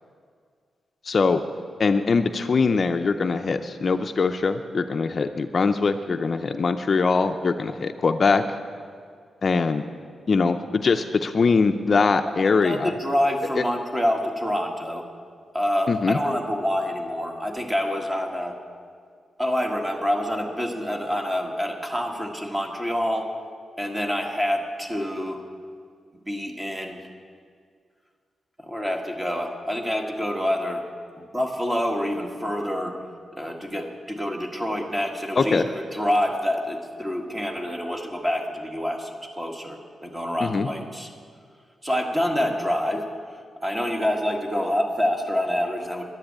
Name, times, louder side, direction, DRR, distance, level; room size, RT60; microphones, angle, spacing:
voice 1, 1.0-1.4 1.8-8.4 9.4-9.8 10.3-12.9 15.9-16.2 35.4-35.7 40.4-40.7, left 4 dB, 45° left, 8 dB, 0.5 m, -22 dB
voice 2, 12.6-15.0 15.5-18.5 19.4-23.3 23.8-25.4 26.3-27.0 28.6-30.9 31.2-33.0 33.3-41.1 41.8-43.1 43.6-46.0, equal, 15° right, 2 dB, 1.6 m, -27 dB
10.5 x 10.5 x 8.7 m, 2.1 s
cardioid pair, 105°, 0 cm